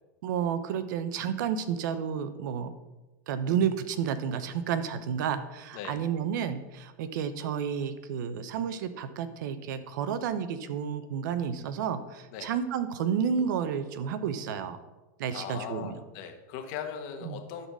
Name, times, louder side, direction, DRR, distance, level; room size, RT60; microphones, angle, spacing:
voice 1, 0.2-2.7 3.3-14.8 15.2-15.9 17.2-17.4, right 7 dB, 70° right, 11 dB, 0.9 m, -31 dB
voice 2, 15.3-17.7, left 8 dB, 55° left, 5 dB, 1.5 m, -39 dB
11.5 x 4.1 x 6.2 m, 1.1 s
supercardioid pair, 130°, 10 cm